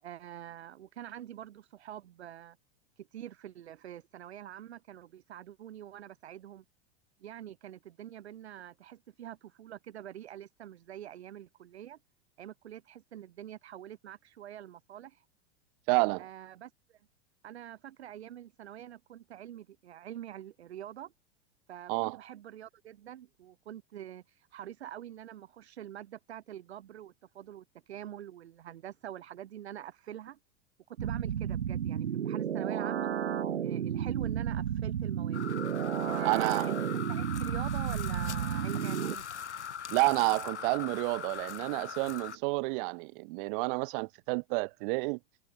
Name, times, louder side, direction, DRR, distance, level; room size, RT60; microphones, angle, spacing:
voice 1, 0.0-2.6 3.0-6.6 7.2-12.0 12.4-15.2 16.2-17.0 17.4-21.1 21.7-24.2 24.5-30.4 30.9-33.1 33.6-35.5 36.0-39.3, right 11 dB, 70° right, 4.5 m, -45 dB
voice 2, 15.9-16.2 21.9-22.2 36.2-36.7 39.9-45.2, right 30 dB, 50° right, 1.8 m, -29 dB
sound 1, 31.0-39.1, right 9 dB, 85° right, 0.6 m, -32 dB
sound 2, 35.3-42.4, left 7 dB, 80° left, 3.1 m, -41 dB
figure-of-eight pair, 90°, 34 cm